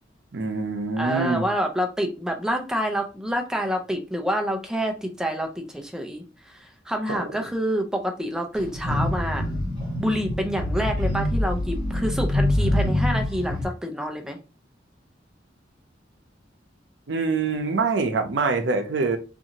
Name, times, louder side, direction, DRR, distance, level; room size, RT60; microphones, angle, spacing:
voice 1, 0.3-1.4 7.1-7.2 17.1-19.2, right 4 dB, 75° right, 0.6 m, -24 dB
voice 2, 1.0-9.5 10.0-14.4, equal, 5° right, 0.4 m, -27 dB
sound 1, 8.5-13.6, left 1 dB, 30° right, 1.5 m, -25 dB
2.6 x 2.5 x 2.8 m
head